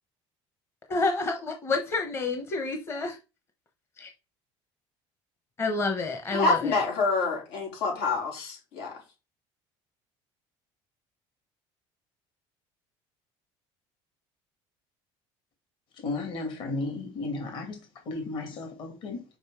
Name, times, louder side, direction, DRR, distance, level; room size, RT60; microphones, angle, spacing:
voice 1, 0.9-3.2 4.0-4.1 5.6-6.8, left 3 dB, 25° left, 1.0 m, -29 dB
voice 2, 6.3-8.9, left 3 dB, 90° left, 4.2 m, -27 dB
voice 3, 15.9-17.8 18.1-19.2, left 3 dB, 50° left, 2.5 m, -34 dB
5.4 x 5.2 x 4.9 m
cardioid pair, 165°, 11 cm